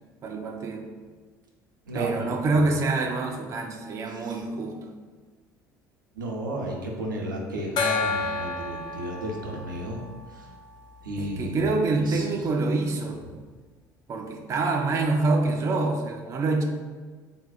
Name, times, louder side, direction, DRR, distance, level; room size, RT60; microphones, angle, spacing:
voice 1, 0.2-0.9 1.9-4.8 11.2-13.2 14.1-16.6, right 3 dB, 30° right, 3 dB, 0.4 m, -26 dB
voice 2, 1.9-2.3 2.5-2.6 4.1-4.4 6.1-10.0 10.3-10.5 11.0-11.7 12.0-12.3 13.3-13.4, right 1 dB, 75° right, -1 dB, 0.6 m, -33 dB
Gong, 7.8-11.0, left 4 dB, 45° left, 0.5 m, -31 dB
3.5 x 2.2 x 4.1 m, 1.5 s
figure-of-eight pair, 60°, 11 cm